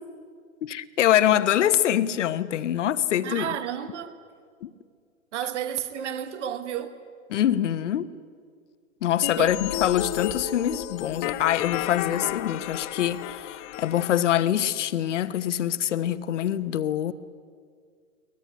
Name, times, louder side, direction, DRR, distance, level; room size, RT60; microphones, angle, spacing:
voice 1, 0.6-3.6 4.6-4.7 7.3-8.1 9.0-17.1, left 11 dB, 55° left, 1.2 m, -24 dB
voice 2, 3.2-4.2 5.3-7.0 9.4-9.6, right 10 dB, 55° right, 1.6 m, -31 dB
sound 1, 9.2-14.2, left 13 dB, 20° left, 0.6 m, -32 dB
23.0 x 19.5 x 9.4 m
hypercardioid pair, 130°, 42 cm